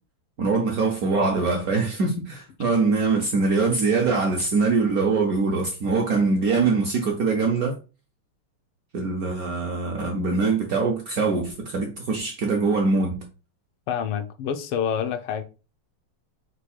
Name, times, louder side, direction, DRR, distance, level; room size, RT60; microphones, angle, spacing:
voice 1, 0.4-7.8 8.9-13.2, right 4 dB, 70° right, 0.8 m, -23 dB
voice 2, 13.9-15.4, left 8 dB, 85° left, 1.5 m, -27 dB
4.6 x 2.4 x 4.3 m
omnidirectional pair, 2.4 m